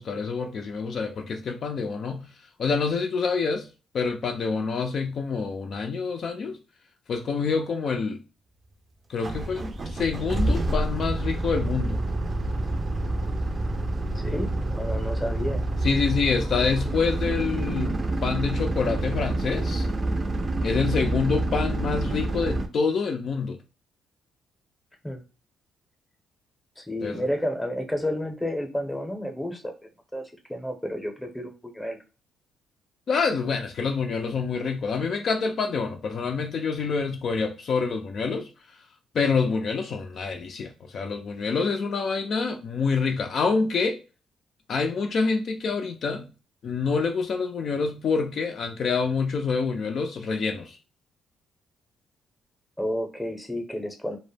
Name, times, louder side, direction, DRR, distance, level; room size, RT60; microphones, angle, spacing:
voice 1, 0.0-2.3 2.6-3.7 3.9-6.6 7.1-8.2 9.1-12.0 15.8-19.9 20.6-23.6 27.0-27.2 33.1-38.5 39.1-44.0 44.7-46.3 46.6-50.8, left 5 dB, 55° left, 0.4 m, -27 dB
sound 1, 9.2-22.7, right 2 dB, 35° right, 0.4 m, -27 dB
voice 2, 14.1-15.6 25.0-25.2 26.8-29.7 30.1-30.2 30.5-32.0 52.8-54.2, equal, 5° left, 0.7 m, -31 dB
2.1 x 2.0 x 3.3 m
cardioid pair, 90°, 0 cm